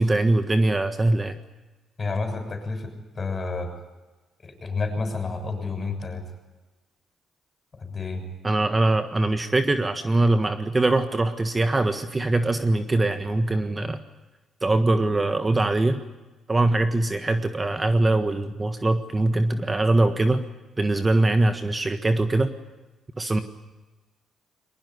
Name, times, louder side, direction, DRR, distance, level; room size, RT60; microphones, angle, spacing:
voice 1, 0.0-1.4 8.4-14.0 14.6-16.0 16.5-20.4 20.8-22.5 23.2-23.4, right 2 dB, 20° right, 8 dB, 1.5 m, -22 dB
voice 2, 2.0-3.7 4.4-6.2 7.7-8.2, left 3 dB, 35° left, 7 dB, 6.8 m, -30 dB
22.0 x 20.0 x 9.6 m, 1.2 s
cardioid pair, 90°, 0 cm